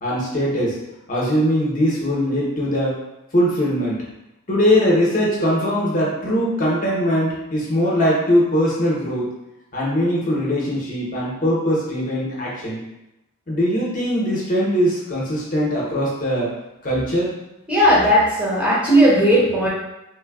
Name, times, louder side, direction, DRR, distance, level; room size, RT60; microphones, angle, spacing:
voice 1, 0.0-0.8 1.1-3.0 3.3-4.0 4.5-9.3 9.7-12.8 13.5-16.5 16.8-17.3, equal, 40° left, -5 dB, 0.7 m, -21 dB
voice 2, 17.7-19.7, equal, 5° right, -8 dB, 0.7 m, -16 dB
3.2 x 2.2 x 2.3 m, 0.92 s
head